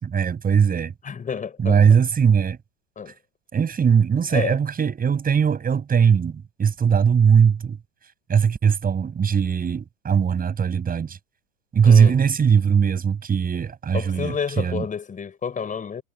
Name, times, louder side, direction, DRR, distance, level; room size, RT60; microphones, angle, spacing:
voice 1, 0.0-0.9 1.6-2.6 3.5-7.8 8.3-11.2 11.7-14.8, right 7 dB, 20° right, 6.3 m, -19 dB
voice 2, 1.0-1.8 3.0-3.1 4.3-4.6 11.8-12.2 13.9-16.0, left 6 dB, 20° left, 4.7 m, -30 dB
hypercardioid pair, 120°, 43 cm